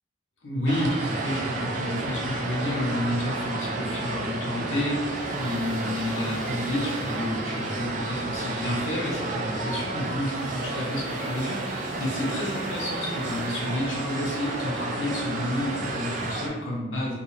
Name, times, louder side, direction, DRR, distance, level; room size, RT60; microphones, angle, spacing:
voice 1, 0.4-17.1, left 1 dB, 90° left, -4 dB, 0.8 m, -30 dB
sound 1, 0.7-16.5, right 2 dB, 40° right, 0.3 m, -31 dB
sound 2, 5.1-16.4, equal, 45° left, 0.5 m, -46 dB
2.4 x 2.3 x 3.1 m, 1.2 s
head